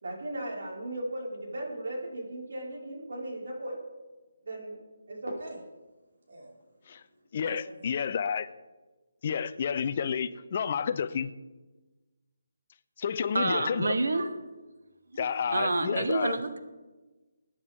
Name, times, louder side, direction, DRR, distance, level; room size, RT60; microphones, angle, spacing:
voice 1, 0.0-3.8 4.4-4.8 5.1-5.6 6.3-6.5 7.4-7.8, right 1 dB, 65° right, -3 dB, 5.2 m, -37 dB
voice 2, 7.3-8.5 9.2-11.3 13.0-13.9 15.2-16.4, left 7 dB, 35° left, 14 dB, 0.6 m, -30 dB
voice 3, 13.3-14.3 15.1-16.6, right 2 dB, 80° right, 8 dB, 1.3 m, -28 dB
22.0 x 10.0 x 3.7 m, 1.2 s
hypercardioid pair, 165°, 0 cm